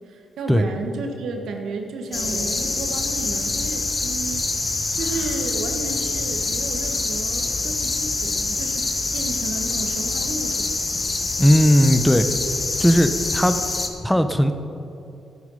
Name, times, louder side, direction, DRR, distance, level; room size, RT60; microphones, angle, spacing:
voice 1, 0.0-8.8 9.1-10.7, right 3 dB, 70° right, 4 dB, 1.6 m, -33 dB
sound 1, 2.0-2.9 3.2-3.7 4.9-5.4, left 2 dB, 60° left, 2.7 m, -41 dB
sound 2, 2.1-13.9, left 3 dB, 40° left, 1.6 m, -25 dB
voice 2, 11.4-12.3 12.8-13.6 14.0-14.5, equal, 5° left, 9 dB, 1.1 m, -17 dB
14.5 x 9.2 x 5.7 m, 2.6 s
hypercardioid pair, 45°, 0 cm